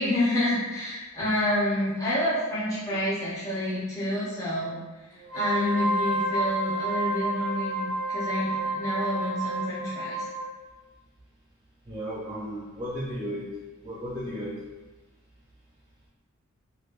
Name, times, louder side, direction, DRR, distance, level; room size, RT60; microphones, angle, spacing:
voice 1, 0.0-4.8 5.3-10.2, left 1 dB, 15° left, -10 dB, 0.8 m, -28 dB
Wind instrument woodwind instrument, 5.2-10.5, right 1 dB, 90° left, 1.1 m, -29 dB
voice 2, 11.9-13.5 13.8-14.5, equal, 20° right, -8 dB, 0.5 m, -34 dB
3.3 x 2.6 x 2.4 m, 1.2 s
head